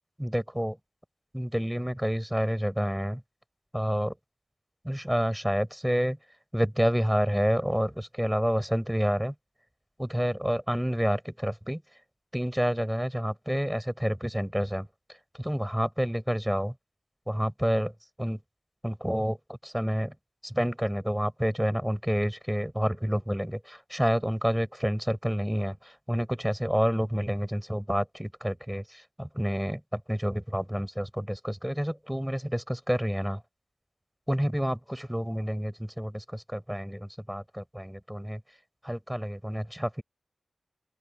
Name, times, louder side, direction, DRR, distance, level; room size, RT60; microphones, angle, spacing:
voice 1, 0.2-0.8 1.3-3.2 3.7-4.1 4.8-6.2 6.5-9.3 10.0-11.8 12.3-14.9 15.4-16.7 17.3-17.9 18.2-18.4 18.8-20.1 20.4-33.4 34.3-38.4 38.8-40.0, equal, 5° right, 6.5 m, -29 dB
open air
cardioid pair, 50°, 0 cm